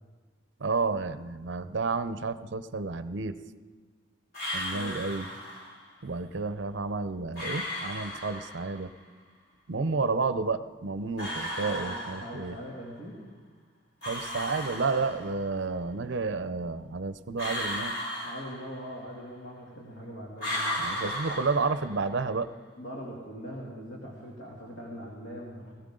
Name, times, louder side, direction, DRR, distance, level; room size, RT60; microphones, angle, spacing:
voice 1, 0.6-3.4 4.5-5.3 6.0-8.9 9.7-12.6 14.1-17.9 20.8-22.5, right 4 dB, 60° right, 12 dB, 0.6 m, -31 dB
sound 1, 4.3-5.8 7.3-8.8 11.2-12.7 14.0-15.6 17.4-19.1 20.4-22.2, equal, 50° left, 3.7 m, -35 dB
voice 2, 4.7-5.0 11.2-13.2 18.2-20.8 22.8-25.7, equal, 90° left, -3 dB, 2.5 m, -42 dB
18.5 x 17.0 x 3.8 m, 1.4 s
head